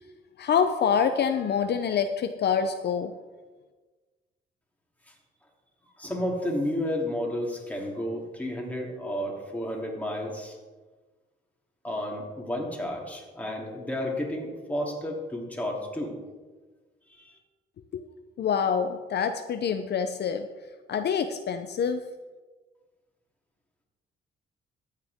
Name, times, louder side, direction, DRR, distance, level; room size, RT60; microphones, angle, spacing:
voice 1, 0.4-3.1 17.9-18.0 18.4-20.5 20.9-22.0, left 7 dB, 55° left, 8 dB, 0.6 m, -26 dB
voice 2, 6.0-10.6 11.8-16.2 17.1-17.4, left 1 dB, 5° left, -2 dB, 3.0 m, -32 dB
14.0 x 9.1 x 3.6 m, 1.3 s
cardioid pair, 90°, 20 cm